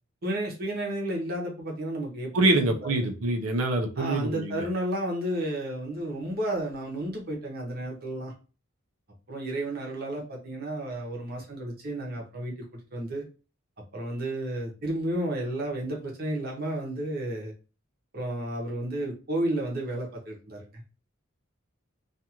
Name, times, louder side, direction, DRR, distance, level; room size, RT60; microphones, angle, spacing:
voice 1, 0.2-3.1 4.0-8.3 9.3-12.5 12.9-13.2 13.9-17.5 18.1-20.8, right 1 dB, 45° right, 0.8 m, -32 dB
voice 2, 2.3-4.6, right 2 dB, 85° right, 0.6 m, -25 dB
2.5 x 2.4 x 2.8 m
head